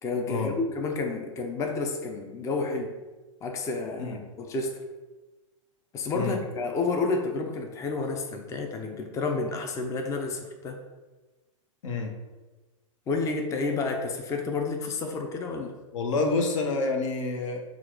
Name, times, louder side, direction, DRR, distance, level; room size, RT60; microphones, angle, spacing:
voice 1, 0.0-3.0 3.4-4.8 5.9-10.8 13.1-15.7, left 3 dB, 20° left, 4 dB, 0.5 m, -30 dB
voice 2, 15.9-17.6, left 3 dB, 70° left, 3 dB, 0.8 m, -28 dB
4.1 x 2.4 x 4.6 m, 1.2 s
hypercardioid pair, 125°, 17 cm